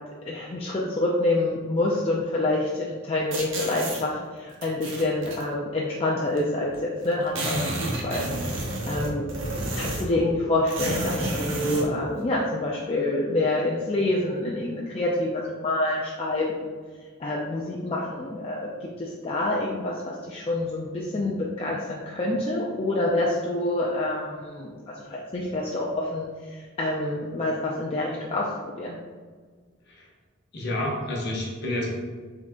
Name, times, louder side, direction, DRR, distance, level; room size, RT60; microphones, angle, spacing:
voice 1, 0.3-9.3 9.7-16.8 17.2-29.0, left 2 dB, 30° left, -4 dB, 0.4 m, -27 dB
sound 1, 3.3-4.0 4.6-5.4 6.4-6.5 6.7-6.8 7.0-10.2 10.7-11.9, right 1 dB, 65° right, 0.8 m, -30 dB
voice 2, 30.5-31.9, left 1 dB, 50° left, -2 dB, 0.9 m, -29 dB
3.8 x 3.2 x 3.5 m, 1.5 s
head